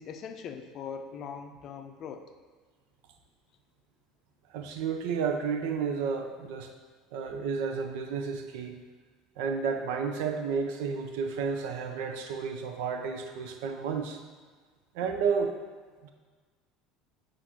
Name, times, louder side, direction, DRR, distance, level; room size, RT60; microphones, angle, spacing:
voice 1, 0.0-2.2, left 6 dB, 50° left, 6 dB, 0.5 m, -41 dB
voice 2, 4.5-6.7 7.1-8.8 9.4-14.2 14.9-15.5 16.0-16.1, right 5 dB, 75° right, 5 dB, 0.4 m, -31 dB
7.5 x 2.5 x 2.8 m, 1.5 s
hypercardioid pair, 85°, 0 cm